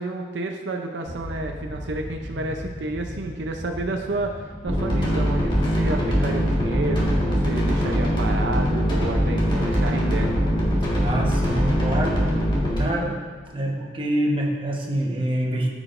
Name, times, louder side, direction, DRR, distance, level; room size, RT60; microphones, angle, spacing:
voice 1, 0.0-10.4, right 2 dB, 80° right, 3 dB, 0.6 m, -30 dB
sound 1, 1.1-12.6, left 1 dB, 55° left, 1.1 m, -40 dB
sound 2, 4.7-12.8, equal, 25° left, 1.6 m, -22 dB
voice 2, 11.0-12.3 12.7-13.2 13.5-15.7, right 1 dB, 30° right, -2 dB, 1.1 m, -25 dB
13.5 x 5.0 x 2.5 m, 1.5 s
head